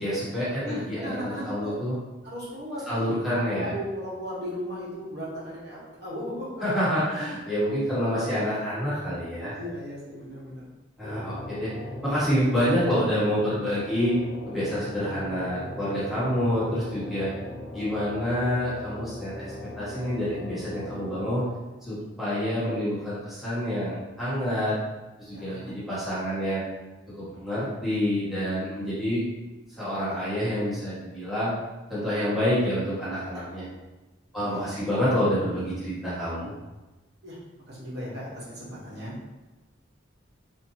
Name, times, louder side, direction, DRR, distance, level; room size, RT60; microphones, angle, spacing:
voice 1, 0.0-1.9 2.9-3.7 6.6-9.5 11.0-11.7 12.0-14.2 14.5-17.3 17.7-19.4 19.8-21.5 21.8-24.7 25.2-26.6 27.1-29.2 29.8-31.5 31.9-33.7 34.3-36.5, equal, ahead, -12 dB, 1.5 m, -27 dB
voice 2, 0.6-1.8 2.2-3.0 3.3-6.5 9.5-10.7 25.3-25.7 33.3-33.4 34.3-34.8 37.2-39.1, equal, 60° right, -7 dB, 1.3 m, -37 dB
sound 1, 11.0-21.5, left 1 dB, 65° left, 0.7 m, -39 dB
4.3 x 2.8 x 2.9 m, 1.1 s
head